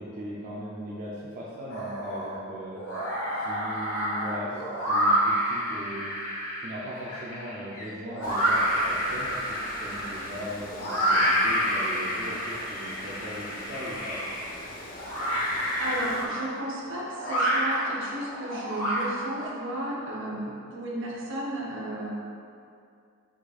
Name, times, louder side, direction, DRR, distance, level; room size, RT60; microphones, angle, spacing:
voice 1, 0.0-3.1 3.4-6.1 6.6-14.2, equal, 40° right, -7 dB, 0.5 m, -39 dB
sound 1, 1.7-2.4 2.7-19.5, equal, 75° left, 1.1 m, -28 dB
Water, 8.2-16.3, left 1 dB, 40° left, 0.5 m, -43 dB
voice 2, 15.5-22.1, right 1 dB, 60° right, -3 dB, 0.8 m, -34 dB
4.8 x 4.1 x 2.4 m, 2.4 s
head